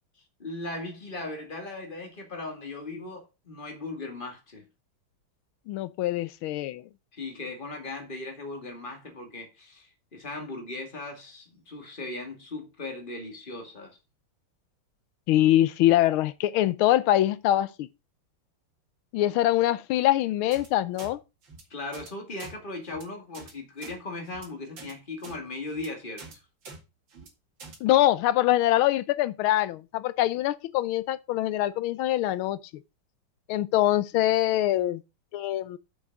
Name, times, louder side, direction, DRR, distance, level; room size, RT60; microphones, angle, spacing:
voice 1, 0.4-4.6 7.1-14.0 21.7-26.4, left 2 dB, 25° left, 2.3 m, -38 dB
voice 2, 5.7-6.8 15.3-17.9 19.1-21.2 27.8-32.6 33.5-35.0 35.3-35.8, left 14 dB, 90° left, 1.5 m, -24 dB
sound 1, 20.5-20.7 21.0-21.1 21.4-21.6 21.9-22.1 22.4-22.5 22.8-23.0 23.3-23.5 23.8-24.0 24.3-24.5 24.8-24.9 25.2-25.4 25.7-25.9 26.2-26.3 26.6-26.8 27.1-27.3 27.6-27.8, right 4 dB, 65° right, 2.8 m, -45 dB
7.2 x 6.5 x 6.0 m
omnidirectional pair, 2.2 m